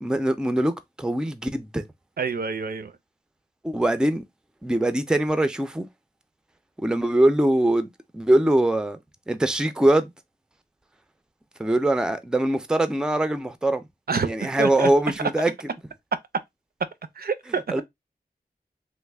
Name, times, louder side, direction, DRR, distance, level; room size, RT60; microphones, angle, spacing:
voice 1, 0.0-1.8 3.6-4.2 4.6-5.9 6.8-9.0 9.3-10.1 11.6-13.9 14.2-15.5 17.7-17.8, right 1 dB, 5° right, 0.4 m, -22 dB
voice 2, 2.2-2.9 14.1-14.9 17.2-17.6, right 5 dB, 65° right, 0.4 m, -27 dB
3.1 x 2.1 x 3.3 m
wide cardioid pair, 75°, 17 cm